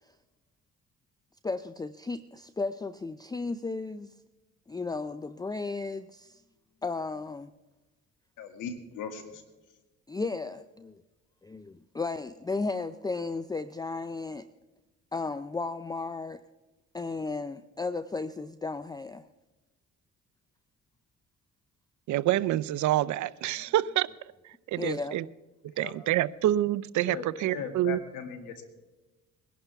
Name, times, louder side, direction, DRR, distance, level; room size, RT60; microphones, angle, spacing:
voice 1, 1.4-4.1 4.7-6.4 6.8-7.5 10.1-11.0 11.4-14.4 15.1-16.4 16.9-19.2 24.8-25.2, left 3 dB, 15° left, 12 dB, 0.4 m, -34 dB
voice 2, 8.4-9.4 25.7-25.9 27.0-27.3 27.5-28.6, left 6 dB, 85° left, 6 dB, 2.0 m, -38 dB
voice 3, 22.1-24.1 24.7-25.2 25.8-28.0, right 14 dB, 70° right, 18 dB, 0.5 m, -27 dB
21.5 x 11.0 x 3.5 m, 1.1 s
cardioid pair, 90°, 30 cm